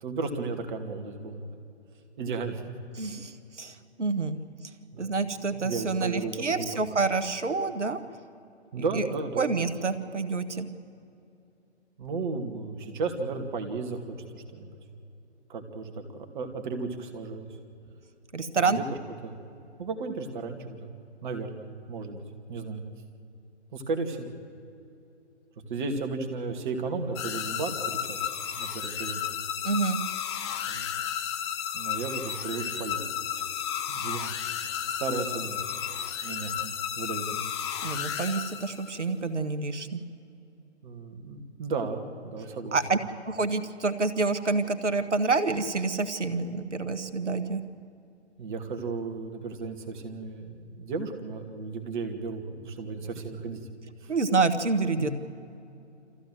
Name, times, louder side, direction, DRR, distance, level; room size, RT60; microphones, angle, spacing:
voice 1, 0.0-1.6 2.2-2.7 4.9-5.1 5.5-6.7 8.7-9.5 12.0-14.0 14.3-14.8 15.5-17.5 18.6-18.8 19.2-19.3 19.8-20.9 21.2-22.2 22.5-22.8 23.7-24.3 25.7-28.2 28.5-29.3 30.7-30.9 31.7-33.1 33.3-33.4 33.9-34.3 34.6-35.6 36.2-37.5 40.8-42.8 48.4-53.6 54.0-54.1 55.0-55.1, right 4 dB, 45° right, 5 dB, 2.5 m, -34 dB
voice 2, 3.0-4.4 5.0-8.0 8.7-9.0 9.4-10.7 18.3-18.8 29.6-30.0 37.8-40.0 42.7-43.0 43.2-47.6 54.1-55.1, right 4 dB, 80° right, 10 dB, 1.6 m, -28 dB
sound 1, 27.2-39.0, left 9 dB, 25° left, 0.7 m, -33 dB
25.5 x 15.0 x 7.9 m, 2.7 s
figure-of-eight pair, 135°, 35 cm